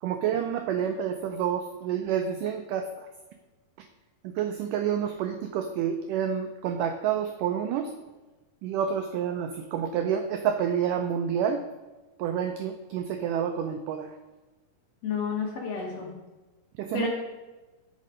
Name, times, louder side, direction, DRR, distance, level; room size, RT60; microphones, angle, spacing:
voice 1, 0.0-3.1 3.8-3.9 4.2-7.9 8.6-11.6 12.2-14.2 16.7-17.1, right 8 dB, 85° right, 7 dB, 1.8 m, -29 dB
voice 2, 15.0-16.1 16.9-17.1, left 5 dB, 55° left, -1 dB, 2.1 m, -30 dB
8.2 x 6.5 x 4.9 m, 1.2 s
omnidirectional pair, 4.4 m